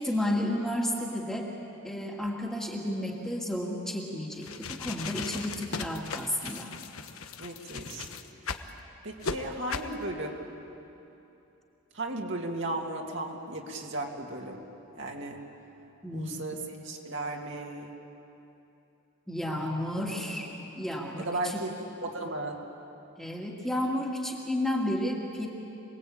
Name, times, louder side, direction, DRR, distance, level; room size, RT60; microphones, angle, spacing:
voice 1, 0.0-1.5 1.8-6.7 16.0-16.4 19.3-20.5 20.8-21.6 23.2-25.5, left 1 dB, ahead, -2 dB, 2.3 m, -32 dB
sound 1, 4.3-8.7 9.2-9.4 9.7-9.9, left 5 dB, 75° left, 1.2 m, -37 dB
voice 2, 7.4-8.1 9.0-10.4 11.9-14.6 14.9-15.4 16.1-17.9 20.1-20.5 21.2-21.7 22.0-22.6, right 2 dB, 55° right, 0 dB, 2.4 m, -35 dB
27.0 x 20.5 x 8.8 m, 2.9 s
head